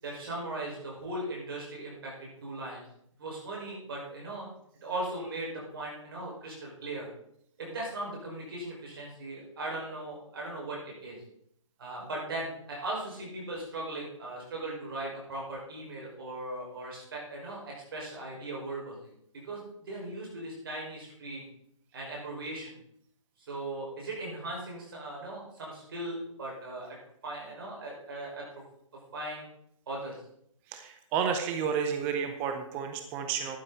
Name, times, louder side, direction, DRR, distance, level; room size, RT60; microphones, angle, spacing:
voice 1, 0.0-2.8 3.2-4.5 4.8-7.1 7.6-11.2 11.8-19.1 19.4-21.5 21.9-22.8 23.4-27.0 27.2-28.5 29.1-29.4 29.9-30.2, right 2 dB, 45° right, -2 dB, 5.4 m, -38 dB
voice 2, 30.7-33.6, right 7 dB, 10° right, 6 dB, 0.6 m, -31 dB
11.5 x 9.5 x 4.1 m, 0.70 s
hypercardioid pair, 160°, 17 cm